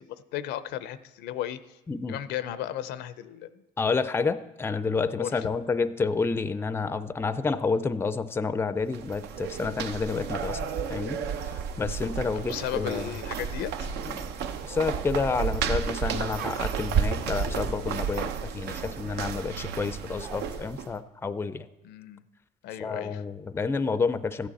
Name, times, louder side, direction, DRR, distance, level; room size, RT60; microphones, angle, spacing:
voice 1, 0.0-1.6 2.1-3.6 5.2-5.5 12.3-13.9 21.8-22.2 22.6-23.2, left 12 dB, 85° left, 14 dB, 0.5 m, -35 dB
voice 2, 1.9-2.2 3.8-10.6 10.9-11.2 11.8-13.1 14.1-14.3 14.6-21.7 22.8-24.5, left 4 dB, 15° left, 14 dB, 0.4 m, -29 dB
sound 1, 8.8-20.9, right 7 dB, 80° right, 0.7 m, -32 dB
sound 2, 12.4-13.4 13.9-14.0 14.4-15.2 16.3-16.6 17.0-20.5, right 6 dB, 60° right, 1.1 m, -46 dB
14.0 x 9.0 x 4.1 m, 1.0 s
cardioid pair, 110°, 17 cm